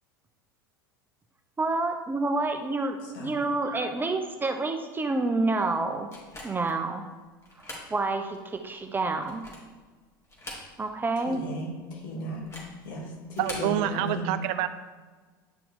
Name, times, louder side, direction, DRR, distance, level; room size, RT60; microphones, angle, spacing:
voice 1, 1.6-6.1 6.4-7.0 7.9-9.4 10.8-11.4, right 3 dB, 15° right, 5 dB, 0.8 m, -28 dB
voice 2, 3.0-3.4 11.2-12.5 12.8-14.3, equal, 65° left, -2 dB, 2.7 m, -36 dB
sound 1, 6.1-6.8 7.4-7.9 8.3-8.4 9.1-9.8 10.2-11.0 11.3-11.4 12.3-12.8 13.3-13.7, left 1 dB, 25° left, 2.8 m, -42 dB
voice 3, 13.4-14.7, right 12 dB, 55° right, 12 dB, 0.5 m, -27 dB
10.0 x 5.8 x 3.7 m, 1.4 s
hypercardioid pair, 80°, 12 cm